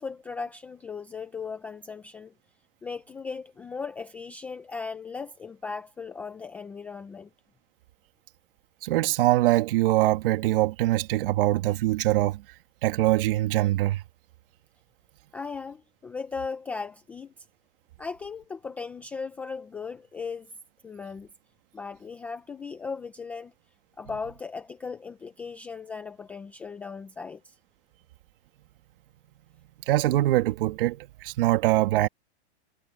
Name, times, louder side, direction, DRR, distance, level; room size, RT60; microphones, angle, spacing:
voice 1, 0.0-2.3 2.8-7.3 15.3-17.3 18.0-20.5 20.8-21.3 21.7-23.5 24.0-27.6, left 5 dB, 5° left, 0.3 m, -37 dB
voice 2, 8.8-12.4 12.8-14.0 29.9-32.1, right 16 dB, 55° right, 2.2 m, -23 dB
supercardioid pair, 160°, 33 cm